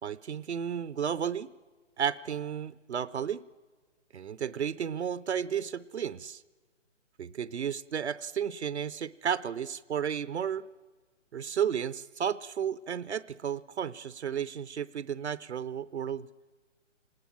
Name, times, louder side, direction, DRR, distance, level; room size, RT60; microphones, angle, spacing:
voice 1, 0.0-1.5 2.0-3.4 4.1-6.4 7.2-10.7 11.3-16.3, right 8 dB, 65° right, 16 dB, 0.7 m, -33 dB
26.5 x 19.5 x 7.4 m, 1.4 s
figure-of-eight pair, 140°, 36 cm